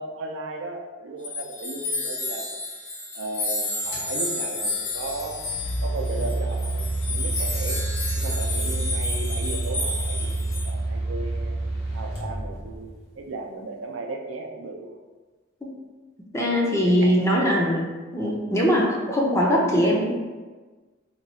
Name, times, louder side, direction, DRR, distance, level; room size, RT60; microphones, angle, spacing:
voice 1, 0.0-2.5 3.1-5.4 5.8-7.8 8.1-11.6 11.9-15.0 16.5-17.2, right 2 dB, 85° right, 2 dB, 0.5 m, -35 dB
sound 1, 1.2-10.7, left 2 dB, 85° left, 1.2 m, -31 dB
sound 2, 3.9-4.1 5.0-13.0, right 2 dB, 60° left, 1.2 m, -28 dB
voice 2, 16.3-20.2, equal, 15° left, -2 dB, 0.5 m, -21 dB
2.9 x 2.3 x 4.1 m, 1.3 s
head